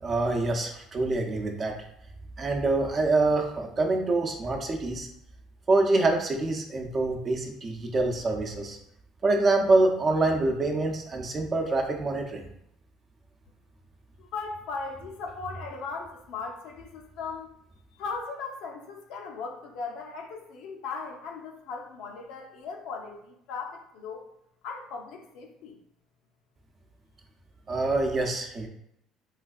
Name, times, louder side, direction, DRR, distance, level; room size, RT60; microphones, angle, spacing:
voice 1, 0.0-1.7 2.4-5.1 5.7-8.8 9.2-12.4 27.7-28.7, right 2 dB, 35° right, 2 dB, 0.6 m, -25 dB
voice 2, 14.2-17.5 18.0-24.2 24.6-25.8, left 4 dB, 75° left, 1 dB, 0.7 m, -38 dB
3.3 x 3.2 x 2.4 m, 0.75 s
cardioid pair, 105°, 0 cm